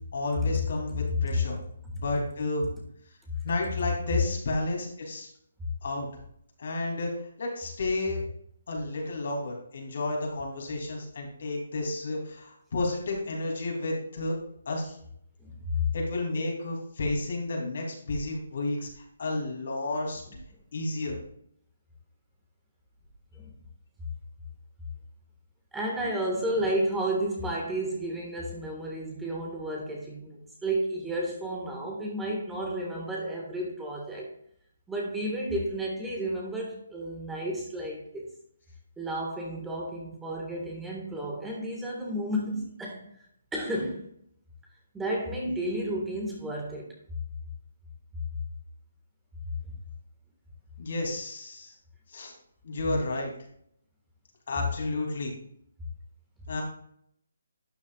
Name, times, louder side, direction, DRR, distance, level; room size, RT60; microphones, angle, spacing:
voice 1, 0.1-1.6 2.0-2.7 3.4-5.3 5.8-6.1 6.6-8.2 8.7-14.3 14.7-15.0 15.9-20.2 20.7-21.2 50.8-51.7 52.1-52.3 52.6-53.3 54.5-55.3 56.5-56.6, left 2 dB, 60° left, 0 dB, 2.9 m, -31 dB
voice 2, 15.4-15.9 21.1-21.2 23.3-23.5 25.7-34.3 34.9-38.3 39.0-43.0 43.5-44.0 44.9-47.0, right 1 dB, 5° right, -2 dB, 1.6 m, -32 dB
11.5 x 7.2 x 2.4 m, 0.68 s
hypercardioid pair, 155°, 0 cm